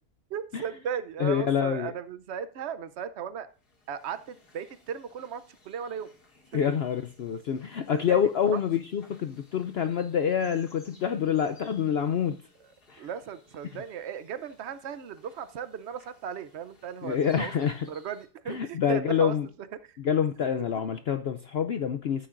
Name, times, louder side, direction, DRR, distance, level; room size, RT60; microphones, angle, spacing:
voice 1, 0.3-3.5 3.9-6.1 6.5-6.6 7.9-8.6 13.0-17.5 17.9-19.3 19.9-20.0, right 8 dB, 55° right, 13 dB, 0.8 m, -36 dB
voice 2, 1.2-1.9 6.5-12.4 12.9-13.1 17.0-17.9 18.5-19.5 20.0-22.3, left 8 dB, 70° left, 9 dB, 0.6 m, -27 dB
sound 1, 3.5-18.3, left 3 dB, 90° left, 2.9 m, -60 dB
13.5 x 8.7 x 2.5 m, 0.38 s
omnidirectional pair, 1.6 m